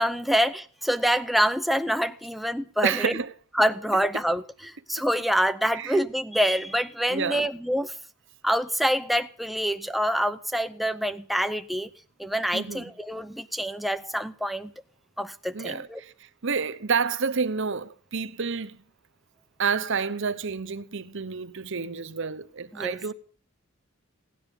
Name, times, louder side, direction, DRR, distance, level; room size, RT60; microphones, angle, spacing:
voice 1, 0.0-3.1 3.6-4.4 4.9-7.9 8.4-11.9 12.2-14.7 15.2-16.0 22.7-23.0, equal, ahead, 0.6 m, -26 dB
voice 2, 2.8-3.3 5.7-6.0 7.1-7.5 12.5-12.9 15.5-16.1 16.4-18.8 19.6-23.1, right 5 dB, 60° right, 0.9 m, -29 dB
17.5 x 10.0 x 6.9 m
head